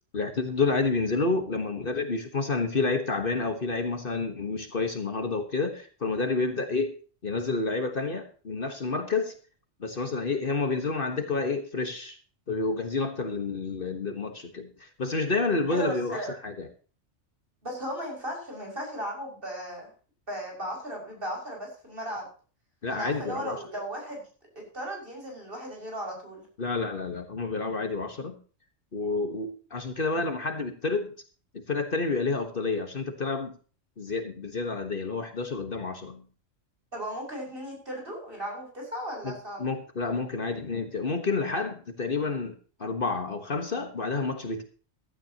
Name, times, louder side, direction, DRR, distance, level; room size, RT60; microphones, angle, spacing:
voice 1, 0.1-7.0 7.2-9.3 9.8-12.2 12.5-16.7 22.8-23.6 26.6-28.4 28.9-31.1 31.5-33.5 34.0-36.2 39.2-39.3 39.6-44.6, left 3 dB, 45° left, 6 dB, 1.6 m, -29 dB
voice 2, 15.7-16.4 17.6-19.9 20.3-22.3 22.9-24.2 24.5-26.4 36.9-39.6, equal, 45° right, -1 dB, 6.4 m, -36 dB
15.5 x 13.0 x 2.9 m, 0.38 s
omnidirectional pair, 1.3 m